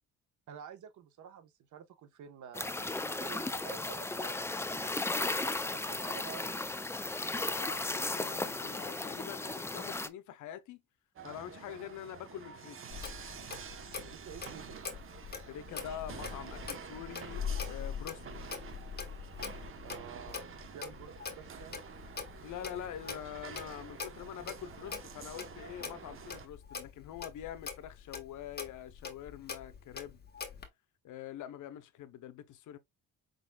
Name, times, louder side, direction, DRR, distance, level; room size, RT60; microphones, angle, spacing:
voice 1, 0.5-5.1 5.6-6.5 14.0-14.8 19.8-21.9, right 8 dB, 75° right, 1.2 m, -50 dB
sound 1, 2.5-10.1, left 2 dB, 10° left, 0.4 m, -35 dB
voice 2, 7.4-10.8 11.2-12.8 15.5-18.4 22.4-30.2 31.0-32.8, left 10 dB, 80° left, 0.8 m, -45 dB
sound 2, 11.2-26.5, right 7 dB, 45° right, 1.0 m, -48 dB
Clock, 12.9-30.7, left 6 dB, 35° left, 1.4 m, -43 dB
5.3 x 3.9 x 2.3 m
cardioid pair, 90°, 30 cm